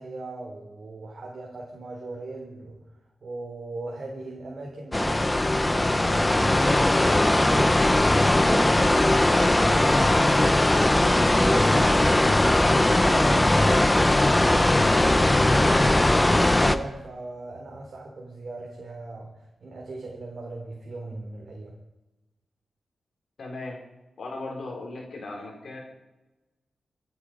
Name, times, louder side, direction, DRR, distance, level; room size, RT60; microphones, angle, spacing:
voice 1, 0.0-2.8 3.2-10.5 10.8-19.3 19.6-21.8, right 2 dB, 45° right, -1 dB, 3.8 m, -38 dB
sound 1, 4.9-16.8, left 1 dB, 10° left, 0.8 m, -20 dB
voice 2, 23.4-23.8 24.2-25.8, left 2 dB, 50° left, -1 dB, 4.5 m, -37 dB
26.5 x 10.0 x 5.3 m, 1.0 s
wide cardioid pair, 165°, 0 cm